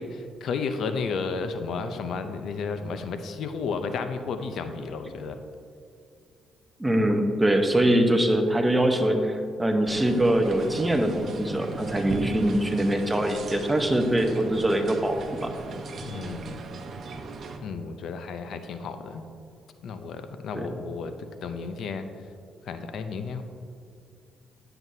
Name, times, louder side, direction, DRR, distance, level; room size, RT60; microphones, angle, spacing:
voice 1, 0.0-5.4 16.0-16.6 17.6-19.3 19.8-21.1 21.4-22.1 22.6-23.4, left 5 dB, 70° left, 8 dB, 0.5 m, -32 dB
voice 2, 6.8-15.5 20.6-20.7, right 1 dB, 10° right, 4 dB, 0.9 m, -23 dB
sound 1, 9.8-17.6, right 3 dB, 55° right, 0.8 m, -37 dB
10.5 x 7.7 x 2.7 m, 2.4 s
cardioid pair, 90°, 0 cm